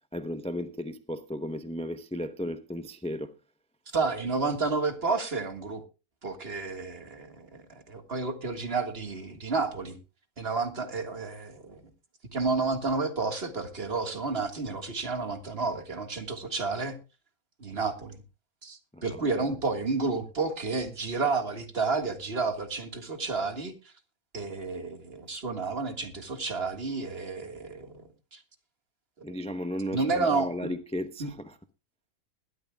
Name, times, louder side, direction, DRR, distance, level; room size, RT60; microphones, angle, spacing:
voice 1, 0.1-3.3 18.9-19.5 29.2-31.6, equal, 5° left, 0.5 m, -35 dB
voice 2, 3.9-5.8 6.2-10.0 10.4-11.8 12.3-17.0 17.6-18.2 18.6-23.7 24.3-28.0 28.3-28.4 29.2-29.3 29.9-30.7 31.2-31.3, right 4 dB, 45° right, 1.9 m, -31 dB
20.5 x 12.5 x 2.3 m
omnidirectional pair, 1.5 m